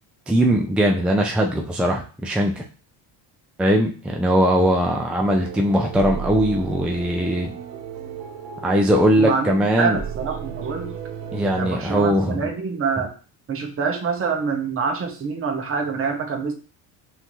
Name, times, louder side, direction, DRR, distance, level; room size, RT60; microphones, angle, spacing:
voice 1, 0.3-2.6 3.6-7.5 8.6-10.0 11.3-12.5, equal, 5° right, 1 dB, 0.5 m, -20 dB
sound 1, 5.2-11.7, right 7 dB, 70° right, 1.0 m, -34 dB
voice 2, 9.2-11.0 11.6-13.1 13.5-16.5, right 5 dB, 30° right, 3 dB, 0.9 m, -26 dB
5.5 x 2.8 x 3.1 m, 0.37 s
cardioid pair, 105°, 42 cm